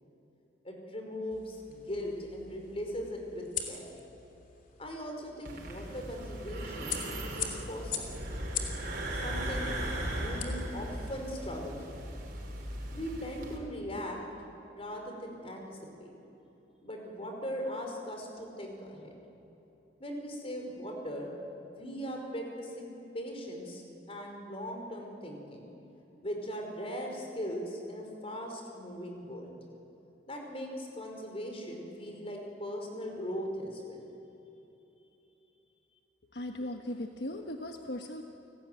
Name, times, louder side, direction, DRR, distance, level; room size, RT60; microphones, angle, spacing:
voice 1, 0.6-3.9 4.8-8.1 9.1-9.7 10.0-12.0 12.9-14.2 14.7-16.1 16.8-19.1 20.0-21.3 21.8-23.8 24.1-25.7 26.2-29.6 30.3-34.1, equal, 35° left, 2 dB, 5.2 m, -39 dB
sound 1, 1.3-11.2, left 7 dB, 50° left, 3.1 m, -43 dB
sound 2, 5.5-13.6, right 1 dB, 55° right, 5.5 m, -38 dB
voice 2, 36.3-38.2, left 1 dB, 65° left, 4 dB, 1.3 m, -38 dB
30.0 x 19.5 x 9.4 m, 3.0 s
head